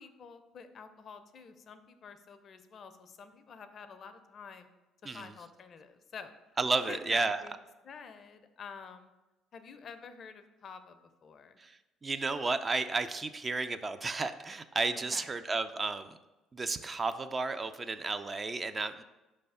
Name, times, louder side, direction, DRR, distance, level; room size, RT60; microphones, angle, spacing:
voice 1, 0.0-4.7 5.0-6.3 6.9-9.1 9.5-11.6 14.9-15.3, left 6 dB, 50° left, 10 dB, 0.5 m, -48 dB
voice 2, 6.6-7.4 11.6-11.8 12.0-16.2 16.5-19.0, right 3 dB, 30° right, 10 dB, 0.4 m, -32 dB
5.3 x 3.3 x 5.5 m, 1.1 s
hypercardioid pair, 60°, 0 cm